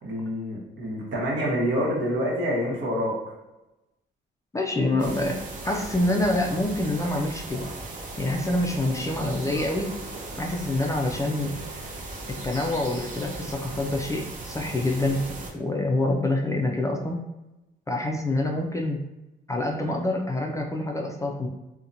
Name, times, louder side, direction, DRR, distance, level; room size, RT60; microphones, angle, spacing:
voice 1, 0.0-3.1, equal, 70° right, -3 dB, 1.0 m, -27 dB
voice 2, 4.5-5.4 5.6-7.7 8.2-9.9 10.4-11.6 12.3-15.2 15.5-17.2 17.9-19.0 19.5-21.5, left 2 dB, 15° left, 1 dB, 0.3 m, -26 dB
sound 1, 5.0-15.5, right 2 dB, 40° right, 0.6 m, -37 dB
2.7 x 2.1 x 2.5 m, 0.98 s
cardioid pair, 90°, 20 cm